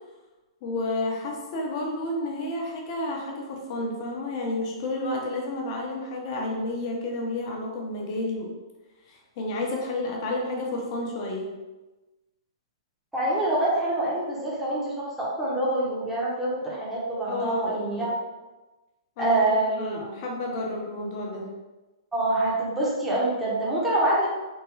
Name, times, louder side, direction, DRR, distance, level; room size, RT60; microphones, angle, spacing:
voice 1, 0.6-8.5 9.1-11.5 17.3-18.1 19.2-19.4 19.8-21.5, left 2 dB, 45° left, 0 dB, 0.8 m, -31 dB
voice 2, 13.1-18.1 19.2-20.1 22.1-24.3, right 1 dB, 5° right, -7 dB, 0.9 m, -26 dB
3.5 x 2.2 x 3.2 m, 1.1 s
hypercardioid pair, 140°, 3 cm